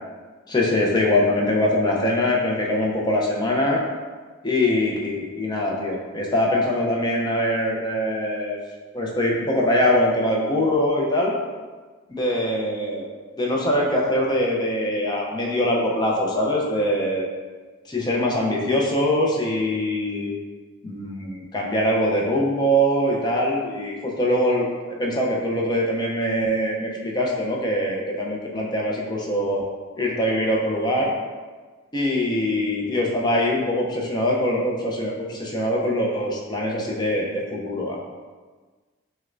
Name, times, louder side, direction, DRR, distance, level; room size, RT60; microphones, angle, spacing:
voice 1, 0.5-3.8 4.4-8.6 8.9-11.3 12.1-13.1 13.4-17.3 17.9-20.3 20.8-29.7 30.0-31.1 31.9-38.0, left 1 dB, 20° left, -2 dB, 0.5 m, -23 dB
6.1 x 2.2 x 2.5 m, 1.4 s
head